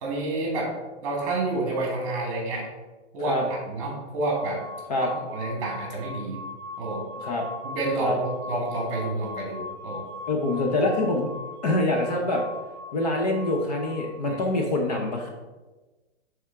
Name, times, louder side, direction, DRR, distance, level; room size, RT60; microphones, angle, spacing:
voice 1, 0.0-0.7 1.0-2.7 3.1-4.6 5.2-6.4 6.8-7.0 7.6-10.0 14.3-14.4, right 2 dB, 30° right, -1 dB, 1.4 m, -29 dB
sound 1, 4.3-14.5, left 2 dB, 15° right, 0.4 m, -40 dB
voice 2, 10.3-11.3 11.6-12.4 12.9-15.3, left 2 dB, 35° left, 1 dB, 0.7 m, -25 dB
7.4 x 3.6 x 3.6 m, 1.2 s
hypercardioid pair, 165°, 34 cm